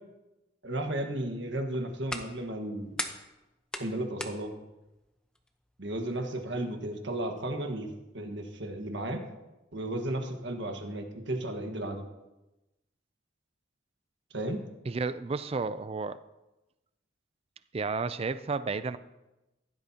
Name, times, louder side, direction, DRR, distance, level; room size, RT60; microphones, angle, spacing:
voice 1, 0.6-2.9 3.8-4.5 5.8-9.2 9.7-12.0 14.3-14.6, right 1 dB, 60° right, 4 dB, 1.5 m, -34 dB
sound 1, 1.4-7.4, left 1 dB, 5° left, 0.8 m, -43 dB
voice 2, 14.9-16.2 17.7-19.0, right 4 dB, 30° right, 13 dB, 0.4 m, -32 dB
15.5 x 12.0 x 2.9 m, 1.0 s
head